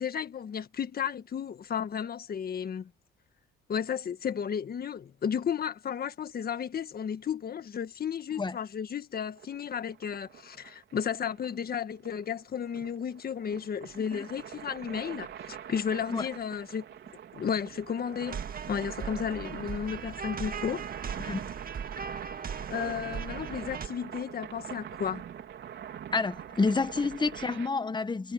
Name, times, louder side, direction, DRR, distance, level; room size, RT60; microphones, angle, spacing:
voice 1, 0.0-2.9 3.7-16.8 17.3-18.4 18.7-21.2 22.7-25.2, left 7 dB, 50° left, 1.6 m, -33 dB
sound 1, 9.4-27.7, right 9 dB, 65° right, 4.2 m, -43 dB
sound 2, 18.3-23.9, right 6 dB, 45° right, 2.1 m, -39 dB
voice 2, 26.1-28.3, left 4 dB, 20° left, 1.4 m, -29 dB
cardioid pair, 90°, 20 cm